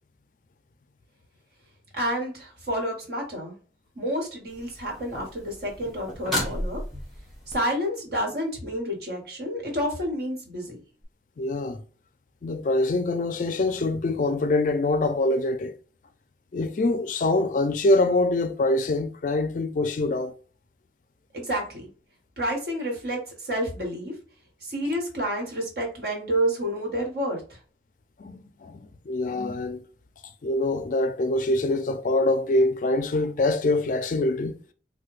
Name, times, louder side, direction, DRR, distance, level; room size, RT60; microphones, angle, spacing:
voice 1, 1.9-3.6 3.9-6.8 7.5-10.8 21.3-21.9 22.4-24.2 24.6-27.6, equal, 60° right, 1.4 m, -29 dB
sound 1, 4.5-7.5 11.0-11.1, equal, ahead, 1.2 m, -34 dB
voice 2, 11.4-11.8 12.4-15.7 16.5-20.3 28.2-28.8 29.1-29.8 30.4-34.6, left 2 dB, 45° left, 0.4 m, -24 dB
3.2 x 2.2 x 3.2 m
head